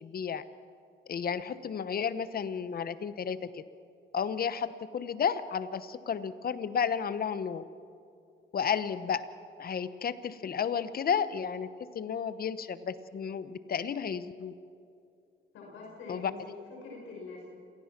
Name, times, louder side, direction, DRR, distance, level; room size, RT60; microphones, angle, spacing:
voice 1, 0.0-0.4 1.1-3.6 4.1-7.6 8.5-9.3 9.6-14.5 16.1-16.3, left 7 dB, 50° left, 14 dB, 1.0 m, -32 dB
voice 2, 15.5-17.5, left 4 dB, 85° left, -2 dB, 5.9 m, -44 dB
27.0 x 18.0 x 6.0 m, 2.5 s
cardioid pair, 90°, 20 cm